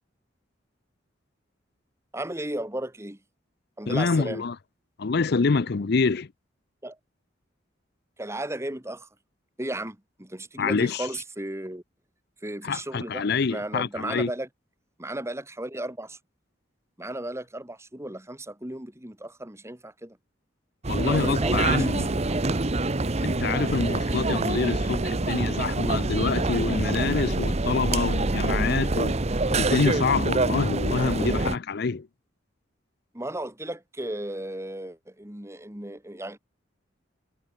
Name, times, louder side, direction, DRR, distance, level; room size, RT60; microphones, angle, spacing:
voice 1, 2.1-3.2 3.8-4.5 6.8-7.0 8.2-9.1 9.6-11.8 12.4-13.2 13.5-14.5 15.0-16.2 17.0-20.2 21.0-23.2 33.1-36.4, right 1 dB, 15° right, 2.4 m, -35 dB
voice 2, 3.9-4.6 5.0-6.3 10.6-11.1 12.6-14.3 20.9-22.1 23.2-32.1, left 4 dB, 55° left, 0.6 m, -26 dB
sound 1, 20.8-31.6, right 2 dB, 35° right, 0.9 m, -26 dB
head